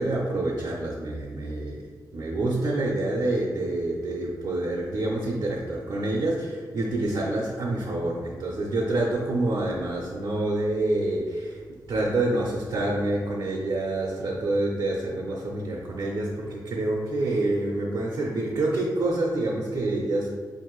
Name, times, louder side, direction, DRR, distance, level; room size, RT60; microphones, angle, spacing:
voice 1, 0.0-11.6 11.9-20.5, right 2 dB, 70° right, -3 dB, 0.5 m, -27 dB
4.2 x 2.6 x 3.0 m, 1.6 s
wide cardioid pair, 155°, 7 cm